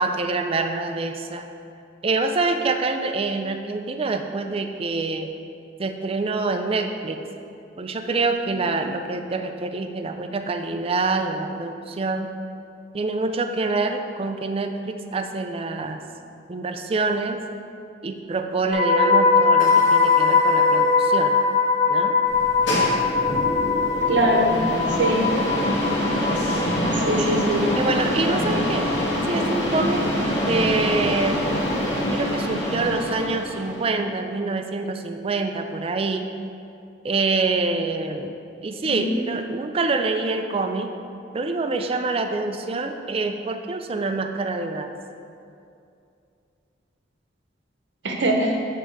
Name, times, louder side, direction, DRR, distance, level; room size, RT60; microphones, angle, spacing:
voice 1, 0.0-1.5 2.0-5.3 5.8-7.2 7.8-12.3 12.9-16.0 16.5-17.4 18.0-21.4 21.9-22.2 27.2-27.4 27.8-28.9 29.3-30.0 30.5-31.4 32.1-36.3 37.0-38.3 38.6-40.9 41.3-44.9, right 3 dB, 30° right, 6 dB, 0.4 m, -26 dB
sound 1, 18.7-28.8 29.1-29.4, left 4 dB, 50° left, 0.9 m, -21 dB
sound 2, 22.3-33.9, equal, 75° left, 1.5 m, -25 dB
voice 2, 24.1-24.6 25.0-25.2 27.0-27.7 38.8-39.1 48.0-48.6, right 1 dB, 75° right, 1 dB, 0.9 m, -21 dB
6.9 x 3.8 x 6.4 m, 2.6 s
head